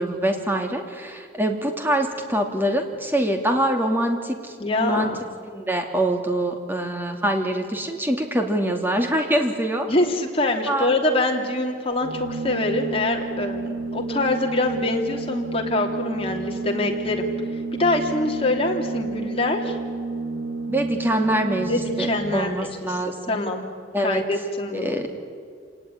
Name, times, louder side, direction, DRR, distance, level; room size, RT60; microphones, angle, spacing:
voice 1, 0.0-5.1 5.5-9.9 10.7-10.9 20.7-23.4 23.9-24.2 24.7-25.1, right 1 dB, 10° right, 4 dB, 2.6 m, -24 dB
voice 2, 4.6-5.2 9.9-17.3 17.7-19.8 21.7-23.0 23.3-23.7 24.0-24.9, left 2 dB, 30° left, 1 dB, 3.0 m, -24 dB
Organ, 11.9-22.7, right 3 dB, 85° right, 2.9 m, -31 dB
27.0 x 18.5 x 9.8 m, 2.2 s
head